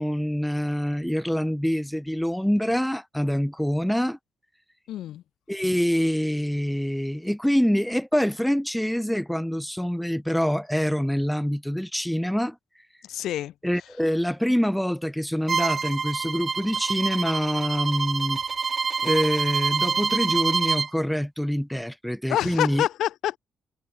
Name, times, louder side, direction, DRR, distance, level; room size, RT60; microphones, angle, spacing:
voice 1, 0.0-4.2 5.5-12.6 13.6-18.4 19.0-22.8, equal, ahead, 0.9 m, -25 dB
voice 2, 4.9-5.2 13.0-13.8 22.3-23.4, left 12 dB, 80° left, 3.5 m, -27 dB
Bowed string instrument, 15.5-20.9, right 5 dB, 40° right, 1.0 m, -26 dB
cardioid pair, 90°, 0 cm